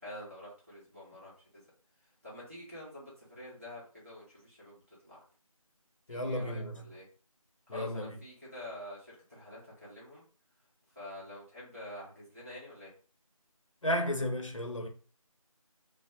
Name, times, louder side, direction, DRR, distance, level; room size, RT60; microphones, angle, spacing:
voice 1, 0.0-1.6 2.2-5.2 6.1-7.1 7.7-10.2 10.9-12.9, left 1 dB, 25° right, 0.9 m, -47 dB
voice 2, 6.1-6.9 7.7-8.2 13.8-14.9, equal, 60° left, 0.7 m, -33 dB
2.7 x 2.0 x 2.5 m
figure-of-eight pair, 175°, 19 cm